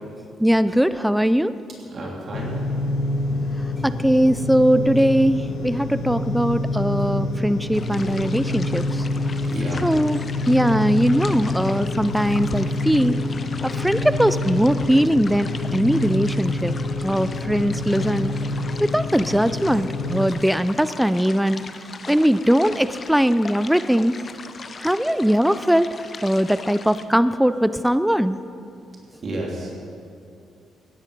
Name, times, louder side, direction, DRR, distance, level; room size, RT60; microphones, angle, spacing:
voice 1, 0.4-1.6 3.8-9.0 9.8-10.2 10.5-13.2 13.6-16.7 17.0-18.3 18.8-21.6 22.1-24.2 24.8-25.9 26.2-28.4, equal, ahead, 14 dB, 0.4 m, -20 dB
voice 2, 1.8-2.6 2.8-3.0 9.4-9.9 15.2-15.3 28.7-28.8 29.2-29.7, right 1 dB, 50° right, -2 dB, 3.1 m, -32 dB
sound 1, 2.3-20.3, left 2 dB, 70° left, 1.4 m, -27 dB
sound 2, 7.7-27.0, left 4 dB, 40° left, 0.7 m, -40 dB
16.5 x 10.5 x 5.2 m, 2.4 s
cardioid pair, 90°, 0 cm